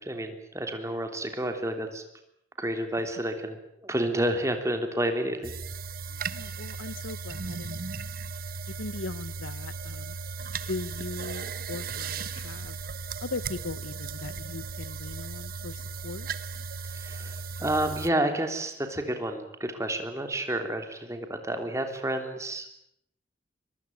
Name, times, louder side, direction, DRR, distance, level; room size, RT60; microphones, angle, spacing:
voice 1, 0.0-2.0 2.6-5.5 16.8-22.7, right 1 dB, 15° right, 6 dB, 3.2 m, -30 dB
sound 1, 5.4-18.1, right 4 dB, 50° right, 1.1 m, -36 dB
voice 2, 6.1-7.8 8.7-10.2 10.7-12.8 13.2-16.3, left 3 dB, 85° left, 17 dB, 1.2 m, -39 dB
23.5 x 23.0 x 9.4 m, 0.76 s
head